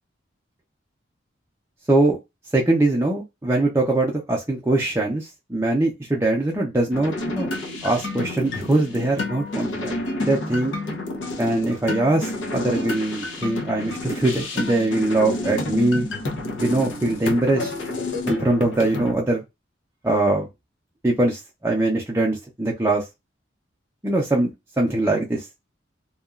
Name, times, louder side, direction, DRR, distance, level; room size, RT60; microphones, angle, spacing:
voice 1, 2.5-7.5 7.8-10.7 11.4-16.1 16.6-17.7 18.3-19.4 20.0-20.5 21.0-23.0 24.0-24.5 24.8-25.5, right 2 dB, 15° right, 0.5 m, -22 dB
sound 1, 6.9-19.1, left 2 dB, 80° left, 0.6 m, -29 dB
2.9 x 2.3 x 2.3 m
head